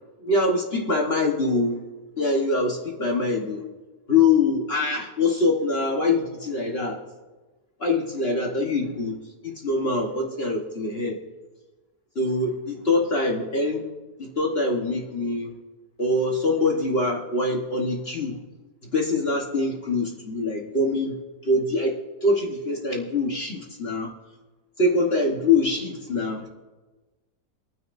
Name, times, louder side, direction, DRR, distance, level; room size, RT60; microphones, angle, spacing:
voice 1, 0.2-1.8 2.2-3.6 4.1-7.0 7.8-9.2 9.4-11.2 12.1-13.9 14.2-15.5 16.0-18.4 18.9-21.2 21.4-24.1 24.8-26.5, left 3 dB, 40° left, 0 dB, 1.3 m, -24 dB
27.0 x 9.5 x 2.6 m, 1.2 s
omnidirectional pair, 1.7 m